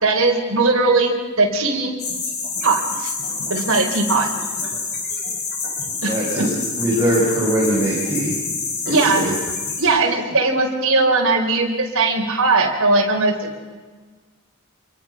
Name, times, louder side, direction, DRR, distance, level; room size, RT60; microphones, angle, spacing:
voice 1, 0.0-1.9 2.6-3.1 3.5-4.3 6.0-6.5 8.9-9.3 9.8-13.6, right 3 dB, 60° right, 0 dB, 3.9 m, -19 dB
sound 1, 2.0-9.8, left 4 dB, 50° left, 5.2 m, -27 dB
voice 2, 6.0-6.5 6.8-8.4 8.8-9.3, right 1 dB, 15° right, -6 dB, 6.4 m, -21 dB
27.5 x 23.5 x 5.9 m, 1.4 s
head